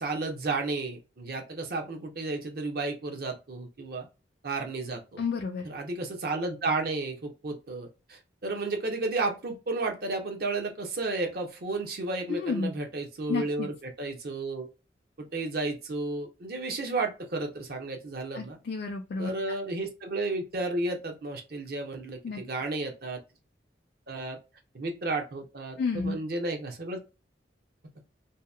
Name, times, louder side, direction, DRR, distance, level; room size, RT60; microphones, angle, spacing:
voice 1, 0.0-4.1 4.4-5.2 5.6-14.7 15.2-18.6 19.2-23.2 24.1-24.4 24.7-27.0, right 3 dB, 55° right, 3 dB, 0.6 m, -32 dB
voice 2, 5.2-5.7 12.3-12.8 13.3-13.7 18.3-19.3 22.2-22.4 25.8-26.2, left 4 dB, 55° left, 2 dB, 0.3 m, -31 dB
2.8 x 2.1 x 2.3 m, 0.30 s
head